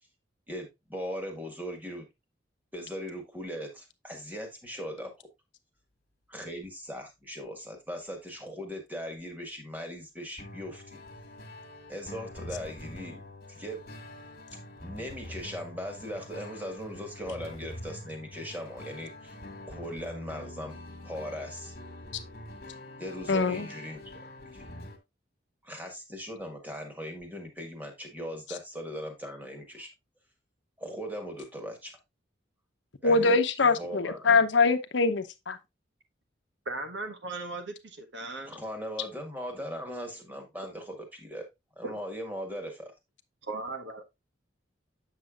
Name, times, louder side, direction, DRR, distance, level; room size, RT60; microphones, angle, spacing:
voice 1, 0.5-2.1 2.7-5.1 6.3-11.0 11.9-13.2 13.5-13.8 14.8-19.3 19.7-20.8 21.0-21.7 23.0-24.3 24.5-24.7 25.6-29.9 30.8-31.9 33.0-34.4 38.5-41.4 41.7-42.9, equal, 10° right, 1.7 m, -39 dB
sound 1, 10.4-25.0, left 1 dB, 50° left, 1.7 m, -45 dB
voice 2, 23.3-23.7 33.0-35.6, left 4 dB, 70° left, 0.8 m, -23 dB
voice 3, 36.6-38.5 41.8-41.9 43.4-44.0, right 3 dB, 70° right, 1.4 m, -37 dB
8.1 x 6.7 x 2.5 m
head